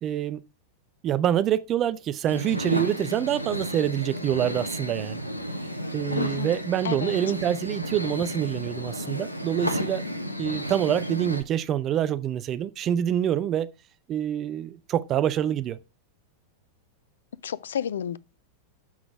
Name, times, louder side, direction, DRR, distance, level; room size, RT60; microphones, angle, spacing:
voice 1, 0.0-0.4 1.0-5.2 5.9-10.0 10.4-13.7 14.1-15.8, right 10 dB, 30° right, 0.5 m, -26 dB
sound 1, 2.3-11.4, equal, 90° left, 0.9 m, -32 dB
voice 2, 6.2-6.5 6.8-7.1 17.4-18.2, left 8 dB, 65° left, 0.4 m, -30 dB
7.2 x 5.9 x 4.6 m
figure-of-eight pair, 90°, 0 cm